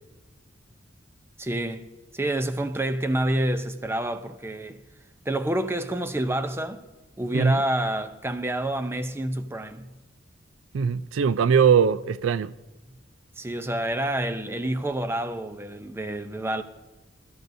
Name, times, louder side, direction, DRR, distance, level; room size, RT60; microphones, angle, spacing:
voice 1, 1.4-1.9 2.1-4.8 5.3-6.8 7.2-9.9 13.4-16.6, right 1 dB, 10° right, 0.6 m, -28 dB
voice 2, 10.7-12.5, right 6 dB, 80° right, 0.4 m, -21 dB
24.0 x 13.5 x 2.7 m
head